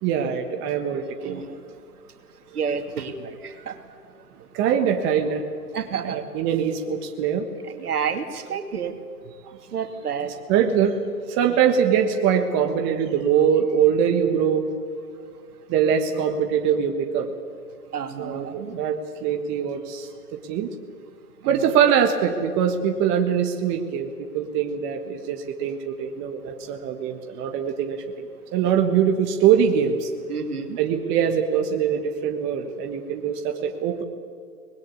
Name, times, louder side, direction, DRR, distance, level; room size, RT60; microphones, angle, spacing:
voice 1, 0.0-1.4 2.5-2.7 4.5-5.5 6.0-7.4 9.4-9.5 10.5-11.0 11.3-14.7 15.7-17.3 18.2-20.7 21.4-30.1 30.8-34.0, right 8 dB, 25° right, 4 dB, 1.5 m, -23 dB
voice 2, 1.2-1.6 2.5-3.8 5.7-6.2 7.6-8.9 9.7-10.3 11.5-11.6 17.9-18.8 21.4-21.7 30.3-30.8, right 6 dB, 70° right, 6 dB, 2.8 m, -30 dB
24.0 x 20.5 x 8.2 m, 2.2 s
hypercardioid pair, 130°, 47 cm